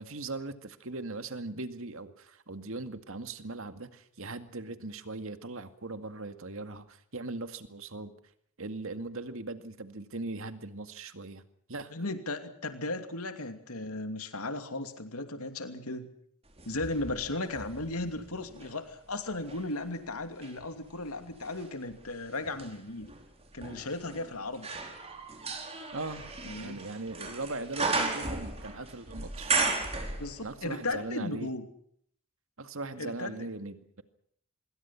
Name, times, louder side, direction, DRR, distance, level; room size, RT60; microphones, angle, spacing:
voice 1, 0.0-8.1 8.6-11.4 11.7-11.9 25.9-26.3 26.6-29.6 30.4-31.5 32.6-34.0, right 2 dB, 60° right, 9 dB, 2.1 m, -39 dB
voice 2, 11.9-16.1 16.7-23.1 23.5-24.7 26.5-26.8 30.2-31.6 33.0-33.4, left 2 dB, 80° left, 7 dB, 2.7 m, -36 dB
sound 1, 16.6-18.8 19.3-30.7 30.9-31.0, right 3 dB, 30° right, 4.6 m, -36 dB
26.0 x 22.5 x 5.9 m, 0.66 s
head